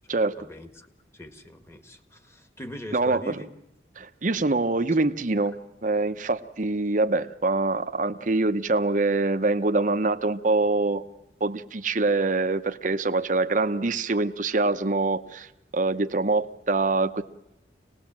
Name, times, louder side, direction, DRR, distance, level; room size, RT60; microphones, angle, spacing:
voice 1, 0.4-3.5 5.0-5.1, left 1 dB, 15° left, 8 dB, 1.7 m, -42 dB
voice 2, 2.9-3.4 4.0-5.5 5.8-11.0 11.4-15.5 15.7-17.2, right 3 dB, 45° right, 8 dB, 0.9 m, -24 dB
26.0 x 19.0 x 7.5 m, 0.86 s
head